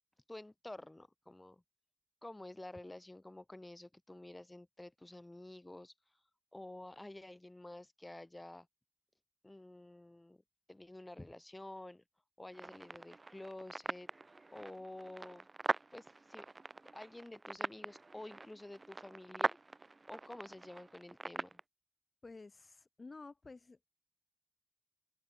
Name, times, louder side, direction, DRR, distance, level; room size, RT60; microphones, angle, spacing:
voice 1, 0.3-1.6 2.2-5.9 6.5-8.7 9.4-10.4 10.7-12.0 12.4-15.5 15.9-16.4 16.9-19.6 20.1-21.6, left 1 dB, 30° left, 2.5 m, -50 dB
sound 1, 12.5-21.6, right 3 dB, 65° right, 1.1 m, -42 dB
voice 2, 22.2-23.9, left 3 dB, 75° left, 0.7 m, -52 dB
open air
wide cardioid pair, 50°, 0 cm